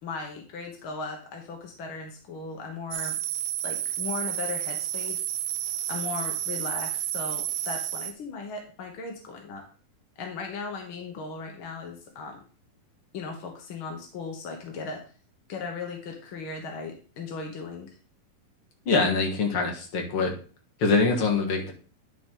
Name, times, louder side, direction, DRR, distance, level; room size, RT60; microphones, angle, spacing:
voice 1, 0.0-3.2 3.6-5.3 5.9-9.6 10.2-12.4 13.1-15.0 15.5-17.9, left 4 dB, 65° left, 2 dB, 1.3 m, -37 dB
sound 1, 2.9-8.1, right 11 dB, 90° right, 2.4 m, -31 dB
voice 2, 18.9-20.3 20.8-21.7, left 4 dB, 50° left, 1 dB, 1.8 m, -24 dB
10.5 x 4.7 x 3.7 m, 0.39 s
omnidirectional pair, 4.0 m